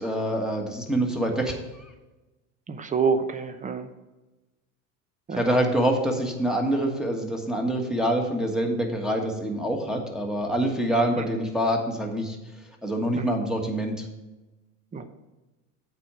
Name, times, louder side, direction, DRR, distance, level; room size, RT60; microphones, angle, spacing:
voice 1, 0.0-1.6 5.3-12.4 12.8-13.9, right 1 dB, ahead, 1 dB, 1.5 m, -25 dB
voice 2, 2.7-3.9 5.3-5.6 11.2-11.3 13.1-13.4 14.9-15.1, right 5 dB, 20° right, 10 dB, 0.8 m, -28 dB
8.3 x 4.4 x 6.8 m, 1.1 s
supercardioid pair, 105°, 39 cm